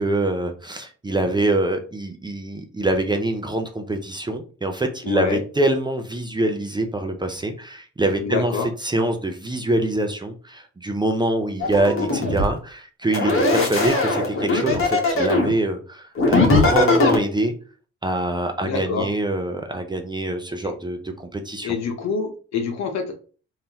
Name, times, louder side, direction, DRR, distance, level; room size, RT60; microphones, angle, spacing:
voice 1, 0.0-17.5 18.0-21.8, right 1 dB, 15° right, 4 dB, 0.6 m, -25 dB
voice 2, 5.0-5.4 8.2-8.7 13.3-13.7 18.6-19.1 21.6-23.1, left 5 dB, 60° left, 4 dB, 1.0 m, -26 dB
sound 1, 11.6-12.5 13.1-15.5 16.2-17.2, left 2 dB, 45° left, 1.2 m, -19 dB
3.6 x 2.8 x 2.9 m, 0.39 s
cardioid pair, 90°, 30 cm